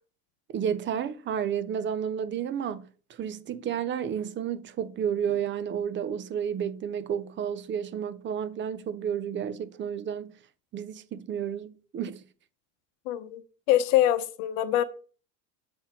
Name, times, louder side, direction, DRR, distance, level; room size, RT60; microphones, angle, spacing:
voice 1, 0.5-10.3 10.7-12.2, right 8 dB, 30° right, 0.5 m, -31 dB
voice 2, 13.1-13.4 13.7-14.8, left 12 dB, 80° left, 0.8 m, -24 dB
7.6 x 3.8 x 4.3 m
supercardioid pair, 110°, 39 cm